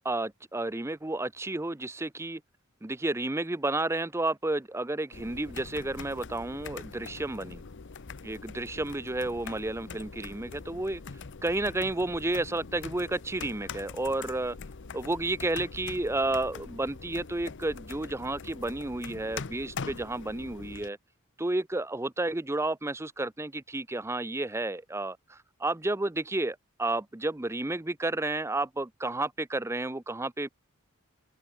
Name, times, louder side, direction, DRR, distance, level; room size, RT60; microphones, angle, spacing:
voice 1, 0.0-2.4 2.8-7.6 8.2-11.0 11.4-14.6 14.9-21.0 21.4-30.5, right 2 dB, 10° right, 0.6 m, -31 dB
sound 1, 5.1-20.9, left 5 dB, 55° left, 0.7 m, -43 dB
head